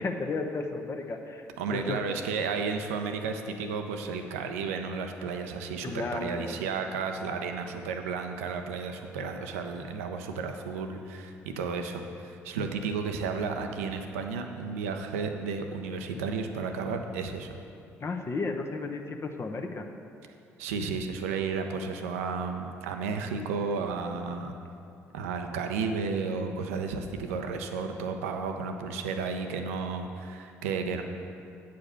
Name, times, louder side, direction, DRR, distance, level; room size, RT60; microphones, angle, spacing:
voice 1, 0.0-1.5 1.7-2.0 5.8-6.6 18.0-19.9, left 3 dB, 35° left, 4 dB, 0.8 m, -33 dB
voice 2, 1.6-17.5 20.6-24.6 25.1-31.0, right 5 dB, 80° right, 5 dB, 0.6 m, -33 dB
8.3 x 5.1 x 6.9 m, 2.5 s
hypercardioid pair, 50°, 8 cm